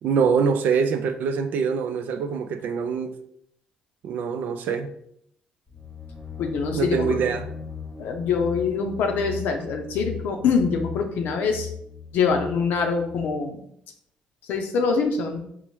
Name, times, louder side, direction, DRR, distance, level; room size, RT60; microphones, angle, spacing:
voice 1, 0.0-3.1 4.0-4.9 6.7-7.5, right 6 dB, 70° right, 0.4 m, -24 dB
sound 1, 5.7-13.4, left 7 dB, 20° left, 0.9 m, -38 dB
voice 2, 6.4-7.2 8.0-11.7 12.1-13.6 14.5-15.4, left 5 dB, 75° left, 0.5 m, -24 dB
4.3 x 2.0 x 3.1 m
supercardioid pair, 65°, 3 cm